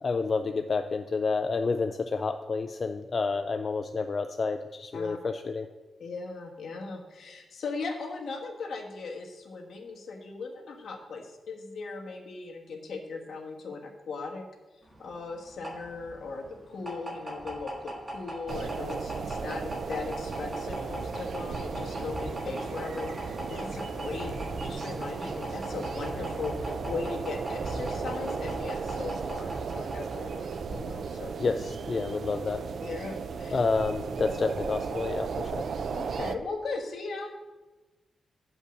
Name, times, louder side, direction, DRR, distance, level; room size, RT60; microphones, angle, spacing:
voice 1, 0.0-5.7 31.4-32.6 33.5-35.6, left 4 dB, 40° left, 7 dB, 0.3 m, -29 dB
voice 2, 6.0-14.5 15.0-31.4 32.8-33.6 35.9-37.3, left 4 dB, 65° left, 2 dB, 1.3 m, -38 dB
sound 1, 14.9-30.9, right 1 dB, 15° right, 1.4 m, -39 dB
sound 2, 18.5-36.4, right 5 dB, 60° right, 0.4 m, -35 dB
8.3 x 5.4 x 6.1 m, 1.2 s
wide cardioid pair, 145°, 0 cm